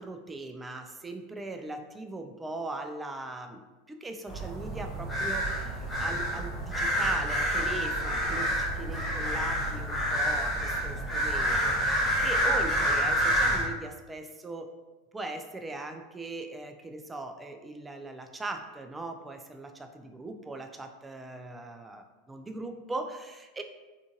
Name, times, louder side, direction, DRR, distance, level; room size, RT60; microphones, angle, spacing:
voice 1, 0.0-14.7 15.1-23.6, right 2 dB, 15° right, 5 dB, 0.3 m, -40 dB
sound 1, 4.3-13.7, equal, 5° left, 0.7 m, -28 dB
3.6 x 2.4 x 2.6 m, 1.2 s
figure-of-eight pair, 85°, 0 cm